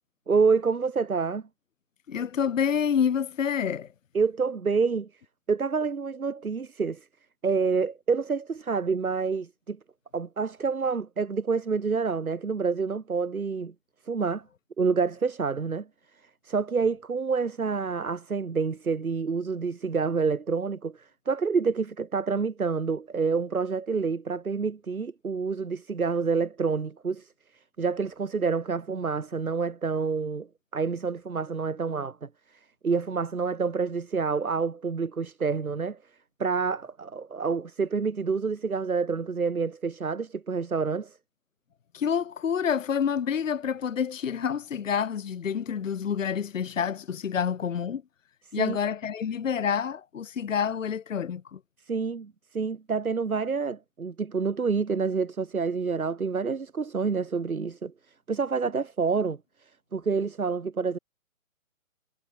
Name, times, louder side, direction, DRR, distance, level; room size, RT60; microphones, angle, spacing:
voice 1, 0.3-1.4 4.1-5.1 5.5-7.1 7.4-9.8 10.1-13.7 14.1-14.4 14.8-15.9 16.4-27.3 27.8-32.3 32.8-36.0 36.4-41.2 48.5-48.8 51.9-57.9 58.3-61.0, right 5 dB, 85° right, 2.0 m, -28 dB
voice 2, 2.1-3.9 41.9-48.0 48.5-51.6, left 7 dB, 65° left, 1.1 m, -28 dB
hypercardioid pair, 150°, 42 cm